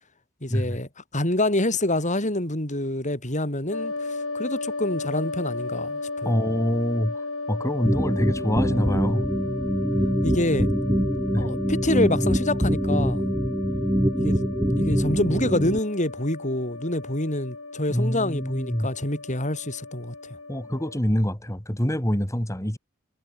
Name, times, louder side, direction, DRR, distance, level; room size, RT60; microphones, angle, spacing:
voice 1, 0.4-3.9 4.3-6.3 10.2-10.7 11.4-13.3 14.2-14.5 14.8-20.1, left 1 dB, 35° left, 6.0 m, -26 dB
sound 1, 3.7-21.0, left 3 dB, 65° left, 4.6 m, -35 dB
voice 2, 6.2-7.2 7.5-9.3 11.3-11.5 17.9-18.9 20.5-22.8, equal, 15° left, 2.7 m, -25 dB
sound 2, 7.8-15.8, equal, 10° right, 1.9 m, -24 dB
head